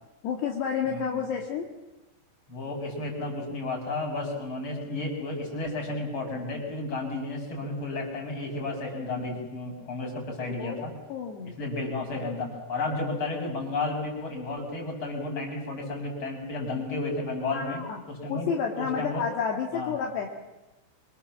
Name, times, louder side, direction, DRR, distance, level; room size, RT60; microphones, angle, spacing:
voice 1, 0.2-1.7 10.5-11.6 17.5-18.0 18.3-20.3, left 7 dB, 65° left, 1 dB, 4.0 m, -30 dB
voice 2, 0.8-1.3 2.5-10.9 11.6-17.8 18.1-18.5 18.8-19.2 19.7-19.9, left 2 dB, 25° left, 1 dB, 6.7 m, -32 dB
25.5 x 25.5 x 7.4 m, 1.0 s
omnidirectional pair, 5.3 m